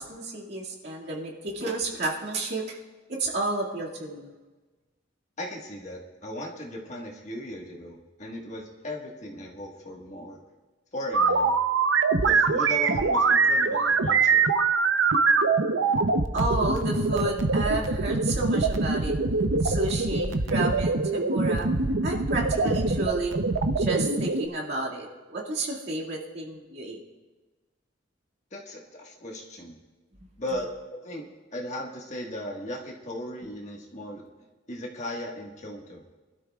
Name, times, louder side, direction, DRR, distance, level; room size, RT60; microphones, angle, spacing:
voice 1, 0.0-2.8 3.1-4.3 16.3-19.1 19.6-21.7 22.0-23.4 23.8-27.0, right 2 dB, 60° right, -3 dB, 2.2 m, -31 dB
voice 2, 5.4-10.4 10.9-11.6 12.2-14.5 28.5-29.8 30.4-31.2 31.5-34.3 34.7-36.0, left 1 dB, 40° left, -1 dB, 1.6 m, -37 dB
sound 1, 11.1-24.5, right 4 dB, 90° right, 0.8 m, -23 dB
24.0 x 12.5 x 2.4 m, 1.3 s
head